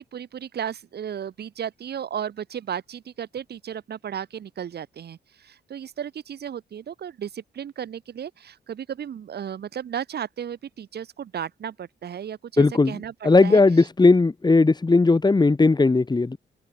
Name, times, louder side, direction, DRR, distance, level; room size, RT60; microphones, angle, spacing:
voice 1, 0.0-13.9, right 9 dB, 65° right, 6.5 m, -34 dB
voice 2, 12.6-13.0 13.2-16.4, left 3 dB, 25° left, 5.5 m, -17 dB
cardioid pair, 100°, 18 cm